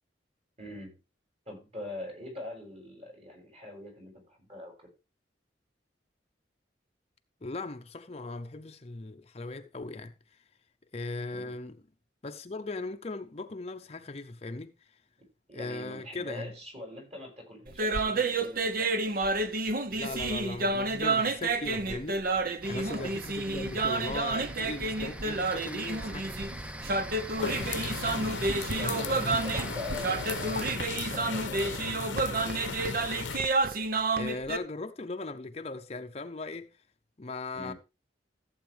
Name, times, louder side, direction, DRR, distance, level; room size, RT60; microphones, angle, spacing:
voice 1, 0.6-0.9 1.5-4.9 11.3-11.5 15.5-19.3 22.9-23.1 23.4-23.6 27.3-28.4 28.7-32.6 37.5-37.8, left 1 dB, 35° right, 6.7 m, -43 dB
voice 2, 7.4-10.4 10.9-11.8 12.2-15.0 15.5-16.5 20.0-22.2 22.6-26.5 34.2-36.7 37.2-37.7, left 3 dB, 35° left, 0.7 m, -38 dB
sound 1, 17.7-34.6, right 3 dB, 50° right, 0.9 m, -30 dB
sound 2, 22.6-30.8, equal, 5° right, 0.7 m, -42 dB
sound 3, 27.4-33.4, left 5 dB, 90° left, 0.8 m, -36 dB
15.0 x 8.1 x 3.4 m
head